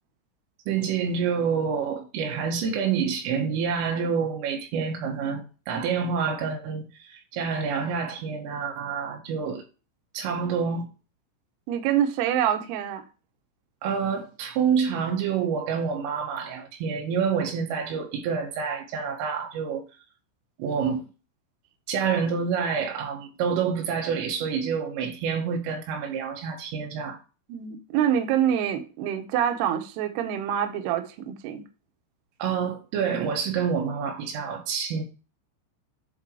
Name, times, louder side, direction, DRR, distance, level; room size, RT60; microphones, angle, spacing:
voice 1, 0.7-9.6 10.1-10.9 13.8-19.8 20.6-21.1 21.9-27.2 32.4-35.0, right 6 dB, 90° right, 4.3 m, -27 dB
voice 2, 11.7-13.0 27.5-31.6, right 10 dB, 70° right, 2.6 m, -26 dB
11.0 x 4.0 x 4.7 m
omnidirectional pair, 5.7 m